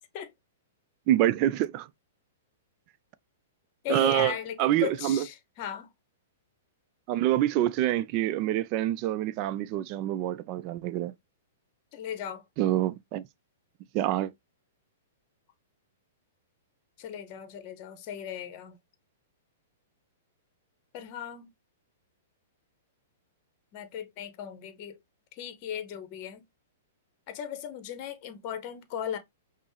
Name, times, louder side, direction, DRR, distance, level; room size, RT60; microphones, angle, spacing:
voice 1, 1.1-1.9 3.9-4.3 4.6-5.2 7.1-11.1 12.6-13.2 13.9-14.3, right 13 dB, 40° right, 0.4 m, -26 dB
voice 2, 3.8-5.9 11.9-12.4 17.0-18.8 20.9-21.5 23.7-25.0 25.4-26.4 27.3-29.2, left 9 dB, 40° left, 0.8 m, -37 dB
5.2 x 2.0 x 3.0 m
hypercardioid pair, 115°, 0 cm